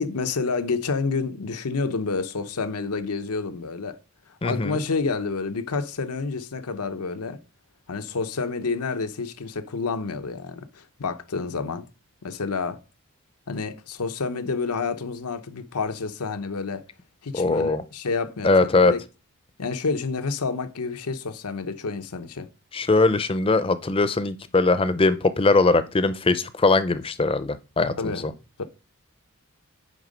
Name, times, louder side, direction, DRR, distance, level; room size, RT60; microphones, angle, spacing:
voice 1, 0.0-4.0 4.4-7.4 7.9-11.9 12.2-12.8 13.5-16.8 17.2-19.0 19.6-22.5 28.0-28.6, left 4 dB, 90° left, 0.8 m, -29 dB
voice 2, 4.4-4.8 17.3-17.8 18.4-18.9 22.7-28.3, left 3 dB, 25° left, 0.5 m, -21 dB
9.2 x 3.7 x 5.1 m
head